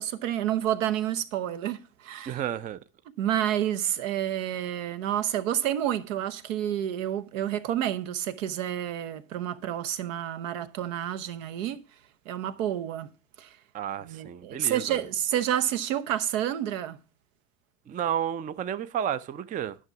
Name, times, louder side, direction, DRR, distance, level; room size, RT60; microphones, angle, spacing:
voice 1, 0.0-2.4 3.2-11.8 12.3-13.1 13.4-13.5 14.0-17.0, right 11 dB, 75° right, 1.0 m, -29 dB
voice 2, 2.3-2.8 13.7-15.0 17.9-19.8, right 9 dB, 20° right, 0.4 m, -31 dB
9.9 x 5.9 x 5.8 m
hypercardioid pair, 95°, 39 cm